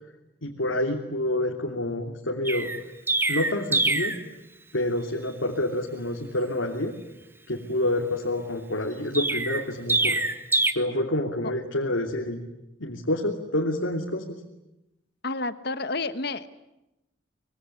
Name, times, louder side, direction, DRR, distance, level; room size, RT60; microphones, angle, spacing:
voice 1, 0.4-2.7 3.3-4.1 4.7-6.9 7.5-10.2 10.7-12.4 12.8-14.2, left 1 dB, 85° left, 0 dB, 3.1 m, -28 dB
Chirp tweet, 2.4-4.2 9.1-10.7, right 2 dB, 10° right, 1.3 m, -25 dB
voice 2, 15.2-16.5, left 3 dB, 55° left, 12 dB, 1.3 m, -30 dB
25.5 x 23.0 x 9.9 m, 0.92 s
head